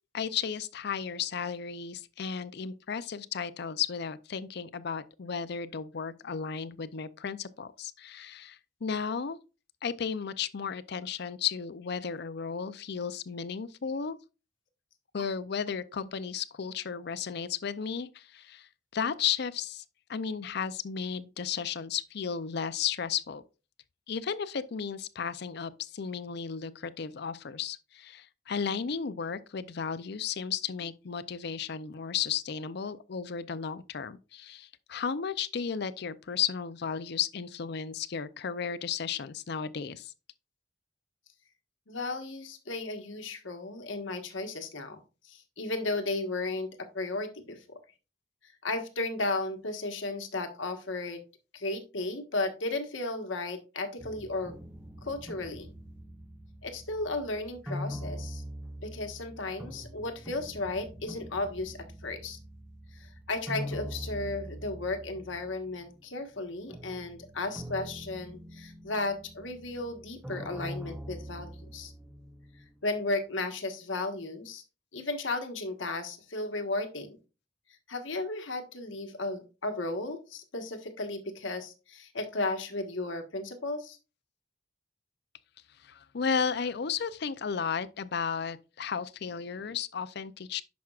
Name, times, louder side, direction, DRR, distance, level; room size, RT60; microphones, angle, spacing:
voice 1, 0.1-9.4 9.8-14.2 15.1-19.8 20.1-23.4 24.1-40.1 85.8-90.6, left 7 dB, 60° left, 0.5 m, -34 dB
voice 2, 41.9-47.8 48.6-51.2 51.5-54.6 55.0-55.7 56.6-58.4 58.8-62.4 62.9-71.9 72.8-74.6 74.9-77.2 77.9-84.0, left 2 dB, 90° left, 1.4 m, -34 dB
sound 1, 54.0-66.0 66.4-72.8, equal, 10° right, 0.6 m, -43 dB
10.5 x 6.1 x 2.4 m
head